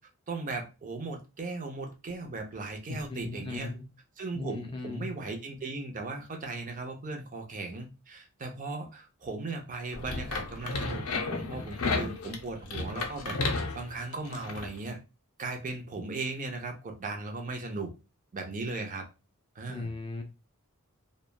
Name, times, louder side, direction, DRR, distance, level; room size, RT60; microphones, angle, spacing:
voice 1, 0.3-3.7 4.2-13.4 13.7-15.0 15.4-17.9 18.3-19.1 19.6-19.9, right 3 dB, 35° right, 3 dB, 0.5 m, -37 dB
voice 2, 2.9-3.9 4.3-5.1 19.7-20.2, left 3 dB, 20° left, 4 dB, 0.4 m, -37 dB
sound 1, 9.9-14.7, left 3 dB, 75° left, 0.5 m, -33 dB
2.9 x 2.1 x 2.2 m, 0.29 s
head